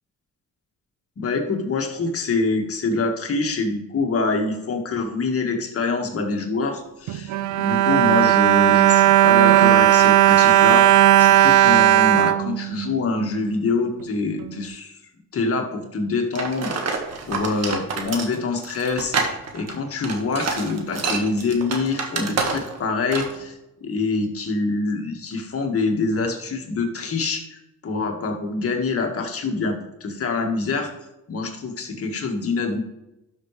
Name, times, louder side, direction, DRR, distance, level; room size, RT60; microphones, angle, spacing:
voice 1, 1.2-15.0 15.3-30.9 31.3-32.8, left 3 dB, 50° left, 3 dB, 1.8 m, -25 dB
Bowed string instrument, 7.1-13.3 14.0-14.1 14.4-14.5, right 13 dB, 75° right, 0.5 m, -16 dB
sound 1, 16.3-22.8 23.1-23.4, right 4 dB, 60° right, 1.7 m, -27 dB
12.0 x 6.1 x 3.3 m, 0.94 s
cardioid pair, 90°, 30 cm